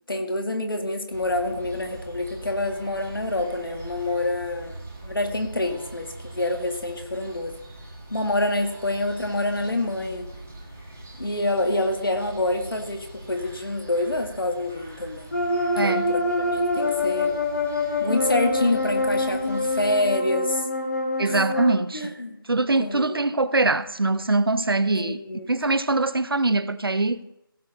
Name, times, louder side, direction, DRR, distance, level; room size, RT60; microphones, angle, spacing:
voice 1, 0.1-7.5 8.1-10.3 11.2-15.4 15.8-17.4 18.0-20.7 21.3-21.4 21.9-22.4 22.8-23.2 24.9-25.5, left 2 dB, 75° left, 2.1 m, -27 dB
sound 1, 1.1-19.9, right 1 dB, 5° right, 0.5 m, -42 dB
sound 2, 15.3-21.7, left 2 dB, 45° left, 1.6 m, -25 dB
voice 2, 15.8-16.1 21.2-22.1 22.5-25.2 25.5-27.2, right 2 dB, 85° right, 0.8 m, -23 dB
16.0 x 6.5 x 4.0 m
figure-of-eight pair, 175°, 12 cm